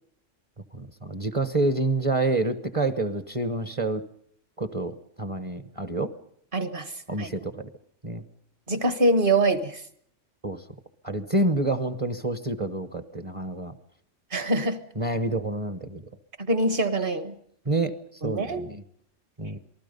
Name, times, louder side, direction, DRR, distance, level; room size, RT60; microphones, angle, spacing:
voice 1, 0.7-4.0 4.6-6.1 7.1-7.7 8.0-8.2 10.4-10.6 11.0-13.7 15.0-16.0 17.6-17.9 18.2-18.8 19.4-19.6, right 2 dB, 25° right, 9 dB, 1.1 m, -28 dB
voice 2, 6.5-6.9 7.2-7.3 8.7-9.8 14.3-14.8 16.4-17.3 18.2-18.6, right 2 dB, 45° right, 9 dB, 1.7 m, -24 dB
27.5 x 19.5 x 5.4 m, 0.67 s
omnidirectional pair, 1.3 m